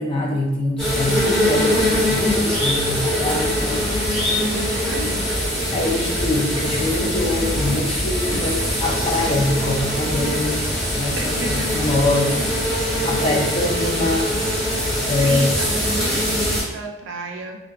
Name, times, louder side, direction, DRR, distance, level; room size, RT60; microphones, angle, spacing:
voice 1, 0.0-3.8 5.7-10.7 11.0-14.4 15.1-15.5, left 2 dB, 25° left, 0 dB, 0.4 m, -24 dB
sound 1, 0.8-16.6, equal, 5° left, 1.0 m, -22 dB
voice 2, 4.4-5.3 11.1-11.7 15.2-17.6, right 3 dB, 70° right, 2 dB, 0.4 m, -31 dB
2.5 x 2.3 x 2.2 m, 0.96 s
head